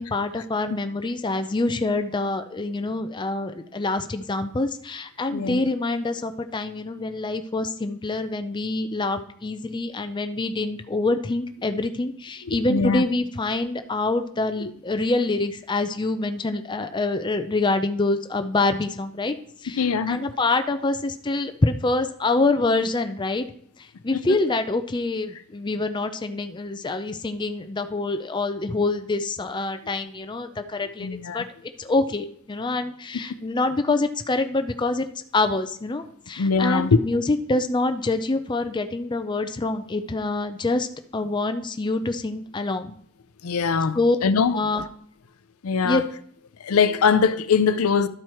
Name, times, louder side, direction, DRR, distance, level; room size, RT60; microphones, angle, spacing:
voice 1, 0.0-19.3 19.6-23.4 24.0-31.1 31.3-31.5 31.8-35.1 35.3-40.9 41.1-42.9 43.9-44.2 44.5-44.9 45.8-46.0, left 2 dB, 20° left, 0.4 m, -26 dB
voice 2, 12.7-13.0 19.7-20.2 24.1-24.4 31.0-31.4 36.4-37.0 43.4-44.6 45.6-46.0 46.6-48.1, left 5 dB, 80° left, 0.5 m, -22 dB
12.0 x 4.7 x 4.4 m
head